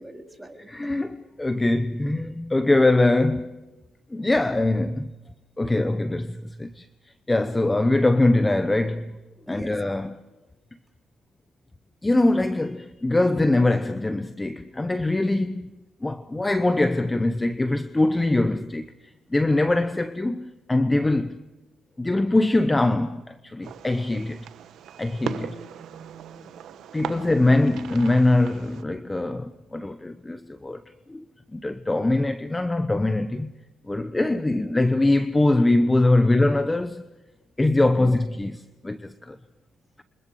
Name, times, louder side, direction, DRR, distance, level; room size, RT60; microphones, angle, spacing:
voice 1, 0.0-0.7 9.5-9.8 25.2-26.5 27.1-27.7 38.0-38.2, right 1 dB, 5° right, 3.8 m, -41 dB
voice 2, 0.7-3.6 4.1-5.1 5.6-6.9 7.3-9.2 9.5-10.2 12.0-15.7 16.0-18.9 19.3-21.4 22.0-24.5 25.0-25.6 26.9-30.8 31.1-31.3 31.5-33.5 33.9-37.1 37.6-39.4, left 2 dB, 15° left, 0.8 m, -22 dB
Fireworks, 23.6-28.8, right 9 dB, 75° right, 1.1 m, -39 dB
28.5 x 25.0 x 4.9 m
cardioid pair, 90°, 0 cm